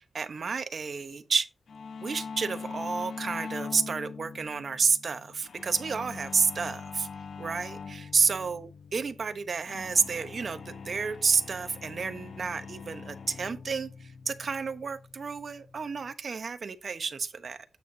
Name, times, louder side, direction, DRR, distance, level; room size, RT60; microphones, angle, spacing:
voice 1, 0.0-1.5 2.0-7.1 7.4-17.6, right 5 dB, 65° right, 0.9 m, -30 dB
sound 1, 1.7-16.1, left 5 dB, 75° left, 0.6 m, -43 dB
8.5 x 6.5 x 2.7 m
cardioid pair, 55°, 0 cm